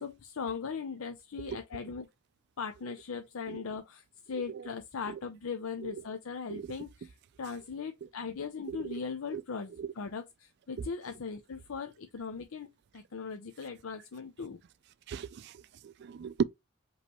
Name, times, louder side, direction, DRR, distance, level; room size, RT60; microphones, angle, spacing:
voice 1, 0.0-2.1 2.6-14.6, left 5 dB, 85° left, 0.6 m, -39 dB
voice 2, 15.1-15.5 15.8-16.4, right 6 dB, 55° right, 0.3 m, -35 dB
5.2 x 3.1 x 3.0 m
head